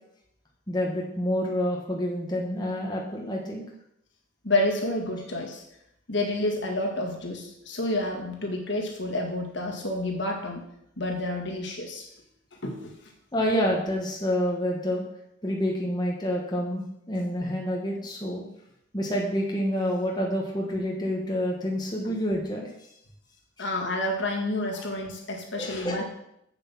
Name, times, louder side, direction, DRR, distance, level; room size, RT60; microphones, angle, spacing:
voice 1, 0.7-3.6 13.3-15.0 15.4-18.4 18.9-22.9 23.6-23.7 24.7-24.9 25.6-26.0, equal, 20° left, -1 dB, 1.3 m, -28 dB
voice 2, 4.4-5.6 6.1-10.6 11.0-12.1 12.6-12.9 22.1-22.2 23.6-26.0, left 1 dB, 60° left, 1 dB, 1.9 m, -29 dB
8.2 x 7.2 x 5.9 m, 0.77 s
head